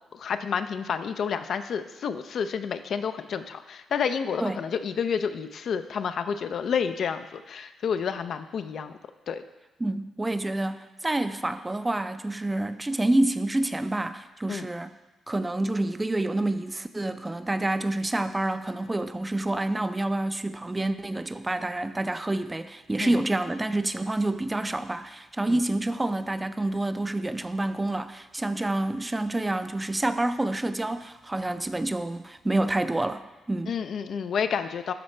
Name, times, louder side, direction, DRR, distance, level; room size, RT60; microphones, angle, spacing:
voice 1, 0.1-8.9 9.3-9.4 14.5-14.7 23.0-23.1 25.5-25.6 33.7-34.9, left 6 dB, 65° left, 9 dB, 0.4 m, -30 dB
voice 2, 9.8-14.9 15.3-33.7, right 2 dB, 20° right, 11 dB, 0.4 m, -28 dB
12.0 x 4.2 x 3.2 m, 1.1 s
supercardioid pair, 50°, 0 cm